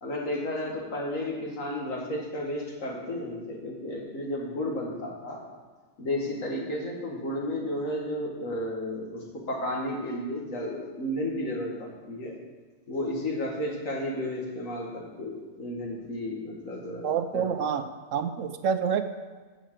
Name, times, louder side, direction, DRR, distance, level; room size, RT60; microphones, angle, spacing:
voice 1, 0.0-5.4 6.0-12.4 12.9-17.6, left 1 dB, 75° left, -1 dB, 2.0 m, -33 dB
voice 2, 17.0-19.0, right 7 dB, 75° right, 10 dB, 1.0 m, -28 dB
7.0 x 5.7 x 7.4 m, 1.4 s
omnidirectional pair, 1.4 m